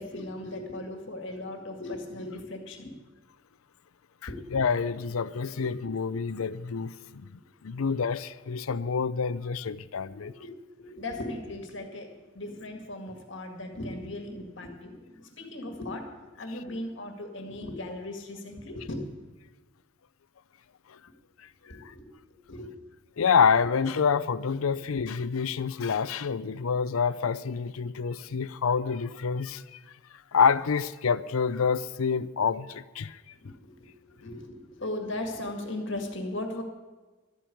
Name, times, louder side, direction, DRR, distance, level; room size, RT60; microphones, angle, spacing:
voice 1, 0.0-2.9 4.3-4.4 5.5-5.9 10.2-12.1 12.3-19.0 21.7-22.1 22.5-22.7 33.4-36.6, left 1 dB, 60° left, 4 dB, 2.0 m, -38 dB
voice 2, 4.2-7.3 7.6-10.3 21.8-21.9 23.2-29.8 30.3-33.2, left 6 dB, 85° left, 16 dB, 0.5 m, -27 dB
13.0 x 9.2 x 8.4 m, 1.3 s
head